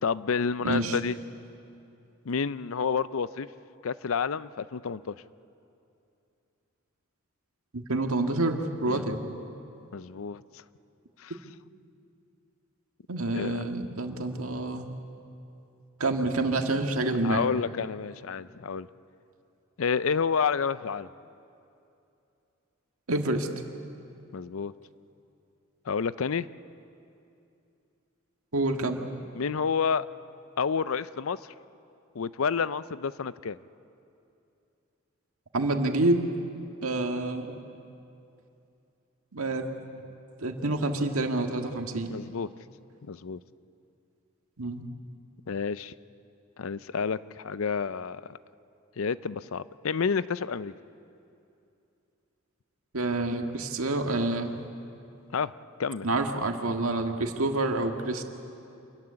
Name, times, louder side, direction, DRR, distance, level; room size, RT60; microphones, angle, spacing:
voice 1, 0.0-1.2 2.3-3.5 3.8-5.2 8.9-9.0 9.9-10.4 11.2-11.4 13.3-13.6 17.2-18.9 19.8-21.1 24.3-24.7 25.9-26.5 29.3-30.1 30.6-31.5 32.1-33.6 42.1-42.5 43.0-43.4 45.5-45.9 46.6-48.4 49.0-50.7 55.3-55.5 55.8-56.1, left 6 dB, 70° left, 16 dB, 0.5 m, -29 dB
voice 2, 0.6-1.0 7.7-9.2 13.1-14.9 16.0-17.5 23.1-23.5 28.5-29.0 35.5-36.2 36.8-37.6 39.3-39.7 40.4-42.1 44.6-44.8 52.9-54.6 56.0-58.2, right 2 dB, 85° right, 4 dB, 1.8 m, -28 dB
27.0 x 14.5 x 9.9 m, 2.7 s
head